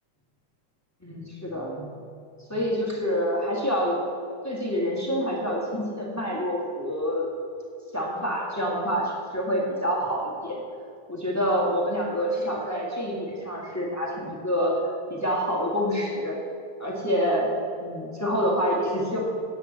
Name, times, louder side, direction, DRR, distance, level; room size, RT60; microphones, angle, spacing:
voice 1, 1.0-1.9 2.5-4.1 4.4-7.3 7.9-10.6 11.1-14.8 15.1-16.4 16.8-17.5 17.8-19.2, equal, 10° left, -3 dB, 0.8 m, -27 dB
10.0 x 7.6 x 7.3 m, 2.5 s
omnidirectional pair, 3.4 m